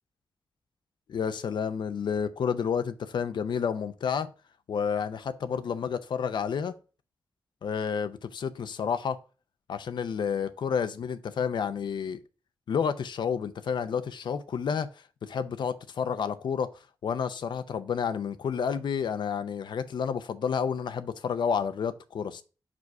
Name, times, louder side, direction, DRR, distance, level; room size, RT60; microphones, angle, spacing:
voice 1, 1.1-4.3 4.7-6.8 7.6-9.2 9.7-12.2 12.7-14.9 15.2-16.7 17.0-22.4, left 7 dB, 85° left, 0.5 m, -30 dB
5.0 x 4.7 x 4.6 m
cardioid pair, 80°, 8 cm